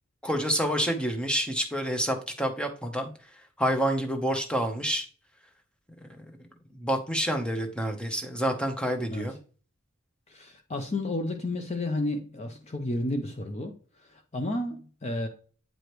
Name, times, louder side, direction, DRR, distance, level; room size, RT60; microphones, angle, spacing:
voice 1, 0.2-3.1 3.6-5.1 5.9-6.0 6.7-9.4, equal, 5° left, 0.8 m, -28 dB
voice 2, 10.3-13.7 14.1-15.3, left 1 dB, 30° left, 0.6 m, -31 dB
9.0 x 4.9 x 3.1 m
head